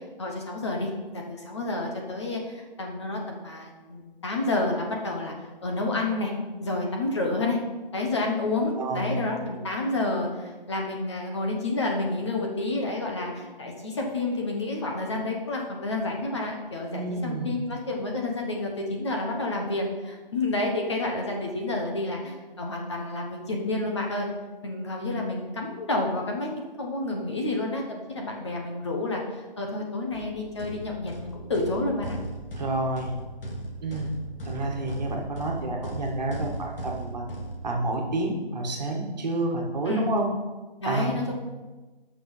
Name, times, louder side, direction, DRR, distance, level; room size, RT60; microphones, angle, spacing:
voice 1, 0.2-5.3 5.6-6.3 6.6-7.6 7.9-24.3 24.6-32.2 39.9-40.1 40.8-41.3, left 2 dB, 30° left, 0 dB, 1.2 m, -29 dB
voice 2, 8.8-9.2 16.9-17.7 32.6-33.1 33.8-34.1 34.4-37.2 37.6-40.3 40.8-41.1, right 2 dB, 45° right, 0 dB, 1.9 m, -29 dB
sound 1, 30.1-38.1, right 1 dB, 70° left, 2.4 m, -37 dB
9.2 x 6.2 x 5.8 m, 1.2 s
hypercardioid pair, 170°, 29 cm